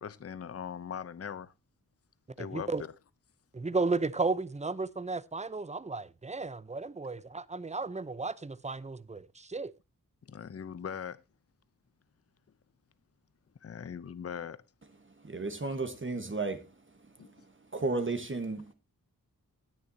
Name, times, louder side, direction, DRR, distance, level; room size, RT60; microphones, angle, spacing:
voice 1, 0.0-1.5 2.4-2.7 10.2-11.2 13.6-14.6 17.2-17.3 17.7-17.8, left 7 dB, 45° left, 0.7 m, -40 dB
voice 2, 2.4-2.8 3.5-9.7, right 3 dB, 20° right, 0.6 m, -34 dB
voice 3, 15.1-16.7 17.7-18.7, right 3 dB, 35° right, 1.3 m, -33 dB
19.5 x 6.7 x 2.7 m
wide cardioid pair, 100°, 35 cm